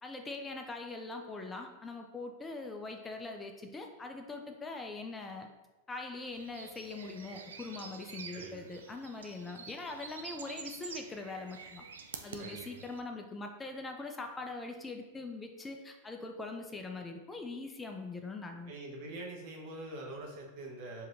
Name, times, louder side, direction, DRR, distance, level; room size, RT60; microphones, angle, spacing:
voice 1, 0.0-5.5 5.9-11.9 12.2-18.7, left 3 dB, 15° left, 4 dB, 0.4 m, -42 dB
sound 1, 6.3-13.0, right 5 dB, 85° right, 0.4 m, -48 dB
voice 2, 18.7-21.1, right 2 dB, 55° right, -1 dB, 0.9 m, -44 dB
4.8 x 2.8 x 2.6 m, 1.1 s
hypercardioid pair, 105°, 0 cm